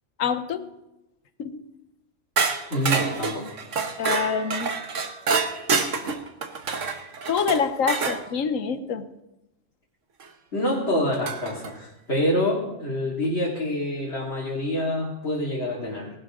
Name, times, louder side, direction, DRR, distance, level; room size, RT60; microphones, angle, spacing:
voice 1, 0.2-0.6 1.4-1.6 4.0-4.7 7.3-9.0, left 6 dB, 90° left, 11 dB, 1.4 m, -26 dB
sound 1, 2.4-8.2 10.2-10.3 11.3-11.7, right 5 dB, 70° right, 1.5 m, -27 dB
voice 2, 2.7-3.5 10.5-16.1, left 1 dB, 55° left, -6 dB, 2.9 m, -26 dB
19.0 x 12.0 x 3.8 m, 0.94 s
omnidirectional pair, 1.3 m